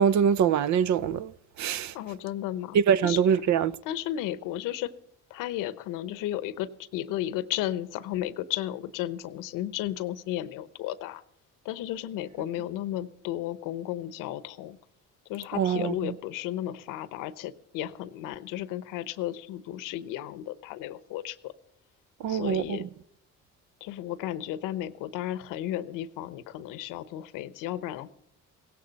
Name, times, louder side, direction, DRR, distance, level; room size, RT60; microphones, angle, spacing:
voice 1, 0.0-1.3 1.6-1.9 2.7-3.8 15.5-16.1 22.2-22.9, right 8 dB, 65° right, 0.7 m, -24 dB
voice 2, 1.9-2.8 3.0-3.2 3.8-4.9 5.3-11.2 11.6-14.8 15.3-21.5 22.3-22.8 23.8-28.1, left 13 dB, 85° left, 0.9 m, -34 dB
17.0 x 15.5 x 4.2 m
supercardioid pair, 80°, 31 cm